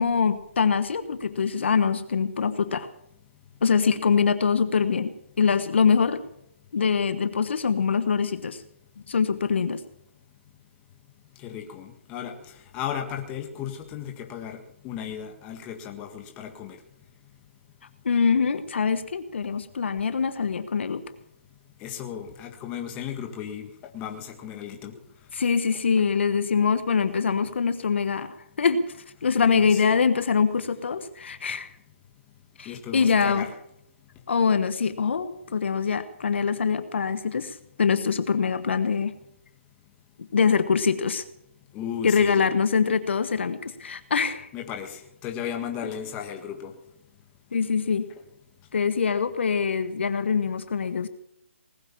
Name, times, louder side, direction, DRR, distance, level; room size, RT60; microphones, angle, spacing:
voice 1, 0.0-2.9 3.6-6.2 6.7-8.6 9.1-9.8 18.0-21.0 25.3-28.3 28.6-28.9 29.2-31.7 32.6-33.5 34.3-39.1 40.3-41.2 42.0-44.5 47.5-48.1 48.7-51.1, left 6 dB, 65° left, 11 dB, 1.2 m, -24 dB
voice 2, 11.4-12.3 12.7-16.8 21.8-23.7 23.9-24.9 29.4-29.8 32.6-33.5 41.7-42.5 44.5-46.7, left 9 dB, 20° left, 4 dB, 1.7 m, -35 dB
19.5 x 9.1 x 7.3 m, 0.76 s
hypercardioid pair, 160°, 7 cm